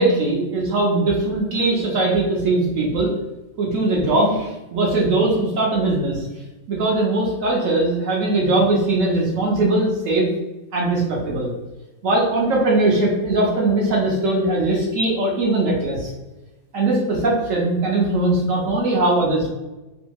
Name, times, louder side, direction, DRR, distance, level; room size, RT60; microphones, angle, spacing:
voice 1, 0.0-3.1 3.6-6.2 6.7-10.3 10.7-11.5 12.0-16.1 16.7-19.5, right 2 dB, 65° right, -3 dB, 0.9 m, -20 dB
2.8 x 2.6 x 2.3 m, 1.1 s
omnidirectional pair, 1.7 m